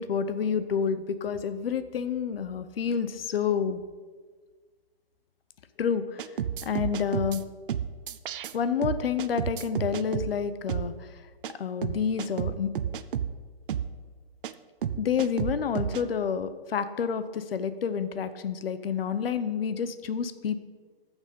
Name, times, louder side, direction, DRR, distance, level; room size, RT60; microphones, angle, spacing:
voice 1, 0.0-3.8 5.8-7.4 8.5-11.2 11.6-12.7 15.0-20.7, left 7 dB, 70° left, 12 dB, 0.9 m, -29 dB
sound 1, 6.2-7.4 7.7-8.5 8.8-10.3 10.7-10.9 11.4-11.5 11.8-13.3 13.7-13.9 14.4-14.5 14.8-16.0, right 9 dB, 60° right, 0.7 m, -31 dB
14.0 x 6.3 x 5.4 m, 1.5 s
hypercardioid pair, 145°, 30 cm